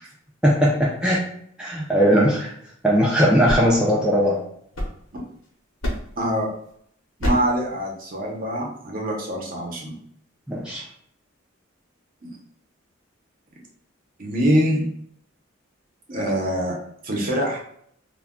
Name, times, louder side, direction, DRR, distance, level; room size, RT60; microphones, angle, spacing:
voice 1, 0.4-1.2 1.6-2.5 2.8-4.4 10.5-10.8, equal, 5° right, -5 dB, 0.3 m, -19 dB
sound 1, 3.5-5.4 5.8-6.3 7.2-7.6, equal, 80° left, 0.8 m, -29 dB
voice 2, 6.2-6.5 7.2-9.9 12.2-12.4 14.2-14.9 16.1-16.8 17.0-17.6, equal, 45° right, -2 dB, 0.7 m, -24 dB
2.2 x 2.2 x 3.5 m, 0.67 s
head